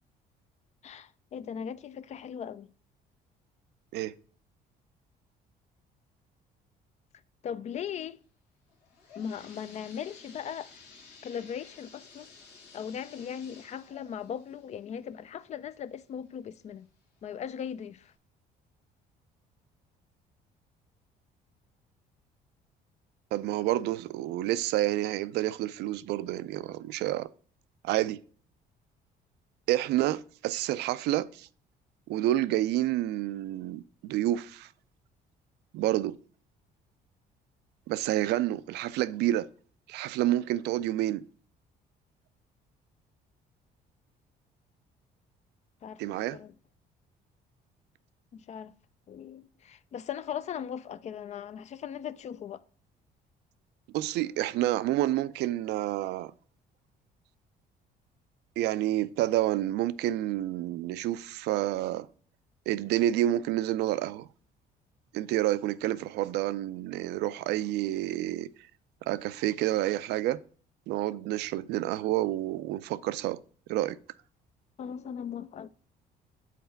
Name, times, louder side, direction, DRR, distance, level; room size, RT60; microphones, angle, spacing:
voice 1, 0.8-2.7 7.4-8.2 9.2-10.7 11.2-12.3 12.7-16.9 17.2-18.1 45.8-46.5 48.3-48.7 49.1-52.6 74.8-75.7, left 8 dB, 40° left, 0.4 m, -38 dB
sound 1, 8.7-16.3 16.8-16.9 17.6-17.7 18.1-18.2, left 4 dB, 85° left, 1.5 m, -54 dB
voice 2, 23.3-27.3 27.8-28.2 29.7-31.5 32.1-34.7 35.7-36.2 37.9-39.5 39.9-41.2 46.0-46.4 53.9-56.3 58.6-62.1 62.7-64.3 65.1-68.5 69.1-70.4 70.9-73.4 73.7-74.0, right 14 dB, 80° right, 0.4 m, -29 dB
5.8 x 4.2 x 5.7 m
cardioid pair, 110°, 17 cm